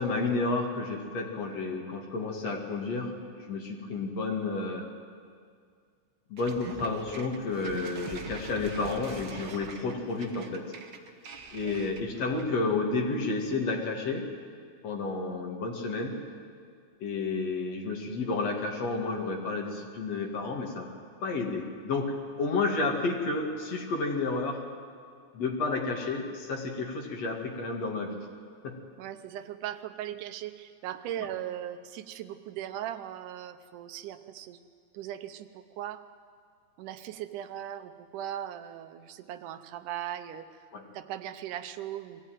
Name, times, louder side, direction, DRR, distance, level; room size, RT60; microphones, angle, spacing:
voice 1, 0.0-4.9 6.3-10.7 11.5-14.3 14.8-16.2 17.0-20.9 21.2-24.6 25.3-28.3 28.6-28.8 40.7-40.9, left 3 dB, 55° left, 2 dB, 3.1 m, -31 dB
sound 1, 6.4-12.6, right 5 dB, 45° right, 1.6 m, -43 dB
voice 2, 29.0-34.6 34.9-36.0 36.8-40.7 40.9-42.2, right 11 dB, 85° right, 10 dB, 2.4 m, -38 dB
22.5 x 16.0 x 9.1 m, 2.1 s
omnidirectional pair, 3.6 m